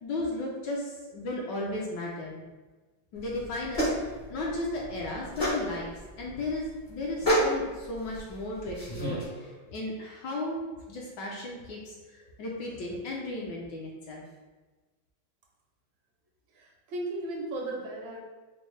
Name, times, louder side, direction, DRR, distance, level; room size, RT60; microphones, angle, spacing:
voice 1, 0.0-2.4 3.1-14.2, left 2 dB, 75° left, -2 dB, 1.1 m, -35 dB
sound 1, 3.1-9.2, equal, 50° left, 0.4 m, -31 dB
voice 2, 16.5-18.2, right 2 dB, 75° right, 0 dB, 1.3 m, -36 dB
4.4 x 2.0 x 3.0 m, 1.2 s
omnidirectional pair, 2.2 m